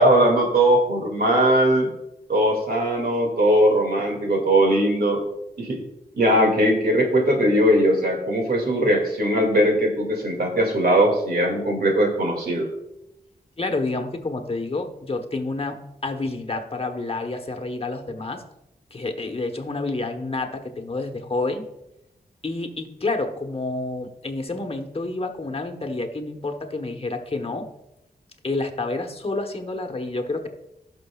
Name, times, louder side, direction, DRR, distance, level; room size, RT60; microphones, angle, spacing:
voice 1, 0.0-1.9 2.3-5.2 5.6-5.8 6.1-12.7, right 1 dB, 70° right, 2 dB, 2.3 m, -20 dB
voice 2, 13.6-18.4 18.9-21.7 22.4-27.7 28.4-30.5, left 2 dB, 35° left, 5 dB, 1.2 m, -29 dB
17.5 x 6.2 x 2.4 m, 0.87 s
wide cardioid pair, 80°, 16 cm